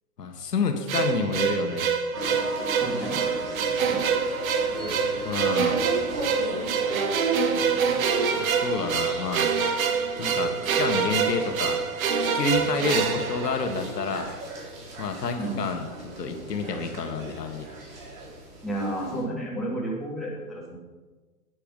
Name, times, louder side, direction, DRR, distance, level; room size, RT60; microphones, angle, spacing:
voice 1, 0.2-1.9 5.2-5.9 8.3-9.5 10.2-11.9 12.3-14.3 15.0-15.9 16.2-17.7, left 4 dB, 85° left, 5 dB, 1.7 m, -29 dB
sound 1, 0.9-14.1, right 6 dB, 60° right, 1.4 m, -26 dB
sound 2, 2.1-19.2, right 2 dB, 35° right, 3.9 m, -36 dB
voice 2, 2.8-3.2 15.4-15.6 18.6-20.8, right 1 dB, ahead, -6 dB, 2.3 m, -31 dB
10.0 x 9.2 x 5.5 m, 1.3 s
hypercardioid pair, 145°, 47 cm